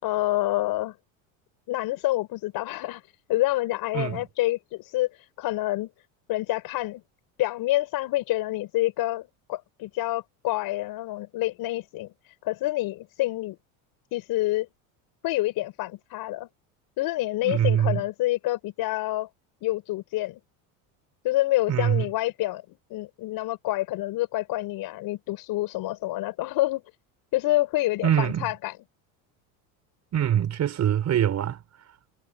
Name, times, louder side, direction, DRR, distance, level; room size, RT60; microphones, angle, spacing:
voice 1, 0.0-1.0 1.7-3.0 3.3-7.0 7.4-12.1 12.4-13.6 14.1-14.7 15.2-16.5 17.0-19.3 19.6-20.4 21.2-26.8 27.3-28.7, left 17 dB, 60° left, 6.1 m, -27 dB
voice 2, 3.9-4.3 17.4-18.0 21.7-22.1 28.0-28.5 30.1-31.6, right 10 dB, 40° right, 4.8 m, -24 dB
supercardioid pair, 110°, 41 cm